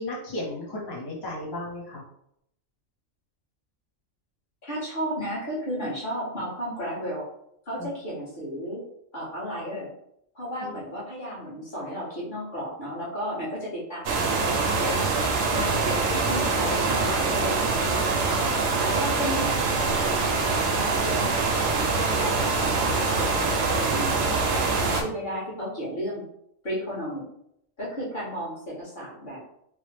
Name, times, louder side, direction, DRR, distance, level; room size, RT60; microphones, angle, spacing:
voice 1, 0.0-2.0 7.8-7.9 10.6-10.7, left 2 dB, 25° left, -6 dB, 0.6 m, -34 dB
voice 2, 4.6-7.3 7.6-8.8 9.1-9.9 10.3-15.1 15.5-17.6 18.2-21.4 21.9-24.4 24.7-26.2 26.6-27.3 27.8-29.4, equal, 40° left, -7 dB, 1.3 m, -33 dB
sound 1, 14.0-25.0, right 3 dB, 70° right, 0.8 m, -24 dB
3.0 x 2.0 x 3.2 m, 0.74 s
omnidirectional pair, 1.3 m